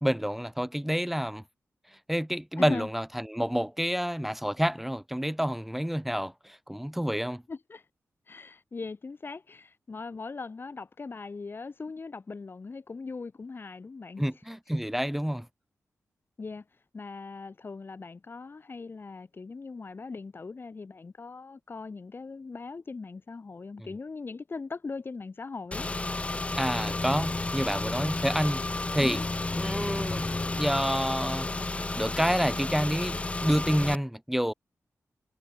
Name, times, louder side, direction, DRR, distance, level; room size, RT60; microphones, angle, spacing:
voice 1, 0.0-1.4 2.1-7.4 14.2-15.5 26.6-28.6 28.9-29.2 29.6-30.3 30.6-31.5 31.9-34.5, equal, 5° right, 0.9 m, -28 dB
voice 2, 2.6-2.9 7.5-7.8 8.3-14.2 16.4-16.6 16.9-25.9 29.0-29.2, left 4 dB, 45° left, 1.5 m, -40 dB
Car / Engine, 25.7-34.0, left 2 dB, 25° left, 0.7 m, -32 dB
wide cardioid pair, 110°, 5 cm